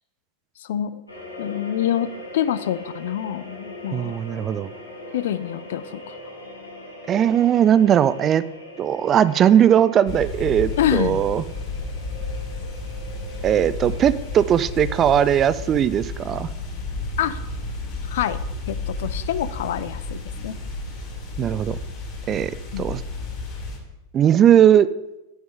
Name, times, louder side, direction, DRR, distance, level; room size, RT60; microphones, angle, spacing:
voice 1, 0.6-1.0 1.4-2.1 2.3-4.2 5.1-6.1 10.8-11.2 17.2-17.4 18.1-18.4 18.7-20.6 22.7-22.9, left 11 dB, 55° left, 14 dB, 0.5 m, -26 dB
sound 1, 1.1-15.7, equal, 80° left, 1.9 m, -41 dB
voice 2, 3.9-4.7 7.1-8.4 8.8-11.4 13.4-16.5 21.4-21.8 22.3-22.5 22.8-23.0 24.1-24.9, right 10 dB, 30° right, 17 dB, 0.3 m, -18 dB
sound 2, 10.1-23.8, left 2 dB, 40° left, 2.5 m, -32 dB
9.0 x 6.2 x 5.2 m, 0.96 s
figure-of-eight pair, 90°, 0 cm